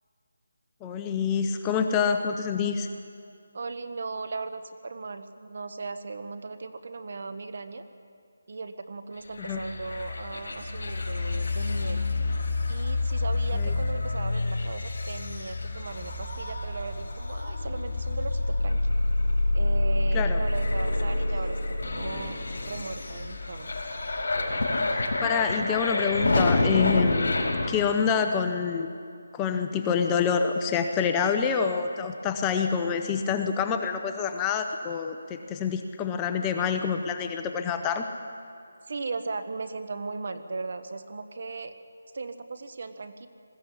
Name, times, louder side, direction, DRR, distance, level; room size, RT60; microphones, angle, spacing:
voice 1, 0.8-2.9 9.5-9.6 13.5-13.7 20.1-20.4 25.2-27.4 27.7-28.9 29.3-38.0, left 6 dB, 15° left, 6 dB, 0.7 m, -27 dB
voice 2, 3.5-7.8 8.5-12.0 12.7-18.9 19.5-22.4 22.6-23.7 38.9-41.7 42.1-43.3, right 3 dB, 55° right, 9 dB, 1.3 m, -37 dB
sound 1, 9.4-27.7, left 2 dB, 65° left, 4.7 m, -28 dB
21.0 x 16.0 x 8.5 m, 2.4 s
figure-of-eight pair, 165°, 0 cm